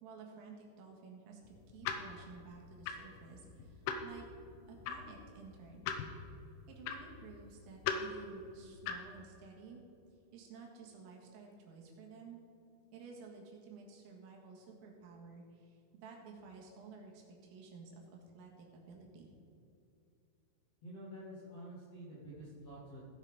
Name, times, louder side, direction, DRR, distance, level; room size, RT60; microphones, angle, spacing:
voice 1, 0.0-4.3 4.7-5.9 6.7-9.8 10.3-12.4 12.9-19.3, right 5 dB, 85° right, 0 dB, 4.3 m, -53 dB
sound 1, 1.5-9.2, left 6 dB, 80° left, 3.1 m, -42 dB
voice 2, 20.8-23.0, equal, 60° left, -7 dB, 1.7 m, -49 dB
16.5 x 6.6 x 4.9 m, 2.7 s
omnidirectional pair, 5.8 m